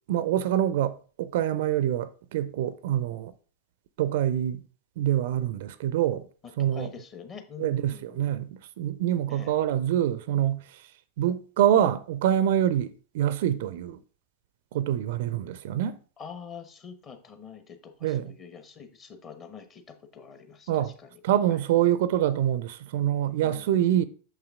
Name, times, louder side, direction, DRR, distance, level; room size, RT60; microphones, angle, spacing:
voice 1, 0.1-3.3 4.0-4.6 5.0-6.3 6.6-6.9 7.6-10.8 11.2-14.0 14.7-16.0 18.0-18.3 20.7-21.0 21.2-24.0, right 11 dB, 55° right, 0.4 m, -25 dB
voice 2, 6.4-8.5 9.3-9.5 16.2-21.2 21.5-21.6 23.4-24.1, left 7 dB, 30° left, 1.0 m, -45 dB
6.5 x 5.7 x 3.5 m
figure-of-eight pair, 90°, 0 cm